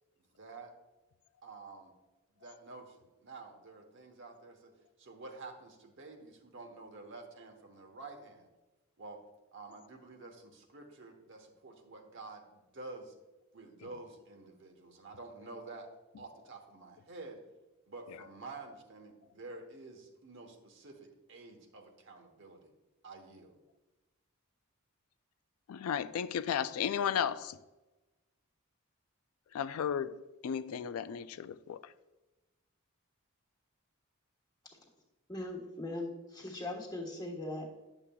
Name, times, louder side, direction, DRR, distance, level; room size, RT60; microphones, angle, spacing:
voice 1, 0.4-0.7 1.4-1.9 2.4-8.5 9.0-9.2 9.5-13.1 13.5-15.9 16.2-17.4 17.9-22.7 23.0-23.6, right 3 dB, 55° right, 1.1 m, -49 dB
voice 2, 25.7-27.6 29.5-31.9, left 8 dB, 80° left, 0.3 m, -34 dB
voice 3, 35.3-37.7, left 1 dB, 20° left, 1.2 m, -40 dB
9.9 x 7.1 x 2.3 m
head